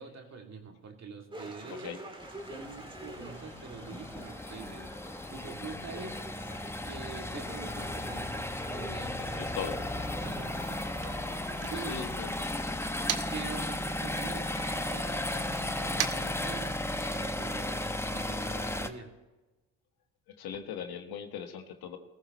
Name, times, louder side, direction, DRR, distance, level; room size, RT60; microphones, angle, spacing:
voice 1, 0.0-2.0 2.4-4.9 5.3-6.2 6.8-9.4 10.2-11.1 11.7-12.1 13.3-16.8 17.1-19.1, right 5 dB, 40° right, 2 dB, 2.6 m, -45 dB
sound 1, 1.3-11.8, right 1 dB, 10° right, 2.1 m, -48 dB
sound 2, 2.2-18.9, left 1 dB, 5° left, 0.9 m, -35 dB
Motor vehicle (road), 9.1-13.6 13.9-17.2, right 10 dB, 65° right, 1.2 m, -42 dB
voice 2, 9.2-9.9 11.9-12.3 20.3-22.0, left 8 dB, 70° left, 6 dB, 1.6 m, -39 dB
19.5 x 14.5 x 3.1 m, 1.2 s
supercardioid pair, 75°, 39 cm